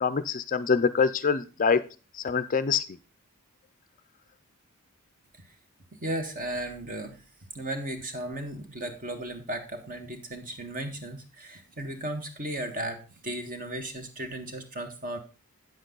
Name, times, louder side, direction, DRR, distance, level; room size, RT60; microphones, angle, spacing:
voice 1, 0.0-1.8 2.2-2.8, left 5 dB, 35° left, 13 dB, 0.5 m, -24 dB
voice 2, 6.0-7.2 7.5-15.2, right 1 dB, 40° right, 6 dB, 1.7 m, -35 dB
9.2 x 7.8 x 3.8 m, 0.32 s
head